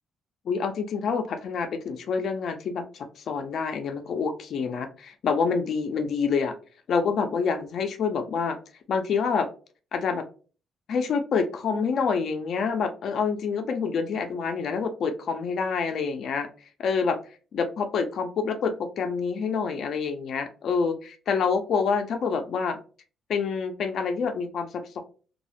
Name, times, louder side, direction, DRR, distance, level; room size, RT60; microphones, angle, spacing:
voice 1, 0.5-6.6 6.9-8.6 8.9-9.5 9.9-10.2 10.9-16.5 16.8-17.2 17.5-22.8 23.3-25.0, left 5 dB, 65° left, 7 dB, 0.4 m, -27 dB
2.3 x 2.0 x 2.9 m, 0.37 s
cardioid pair, 90°, 0 cm